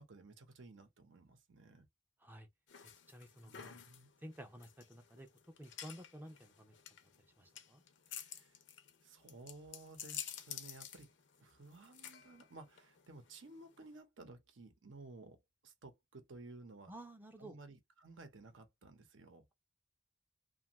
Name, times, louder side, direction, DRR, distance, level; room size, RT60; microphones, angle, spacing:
voice 1, 0.0-1.9 3.4-4.1 8.1-8.6 9.0-11.1 11.4-16.9 17.4-19.5, right 2 dB, 85° right, 0.8 m, -56 dB
sound 1, 2.7-14.0, left 9 dB, 65° left, 0.5 m, -51 dB
voice 2, 3.1-3.8 4.2-5.3 5.6-6.7 7.4-7.8 16.9-17.6, right 1 dB, 10° right, 0.4 m, -52 dB
2.6 x 2.3 x 2.9 m
head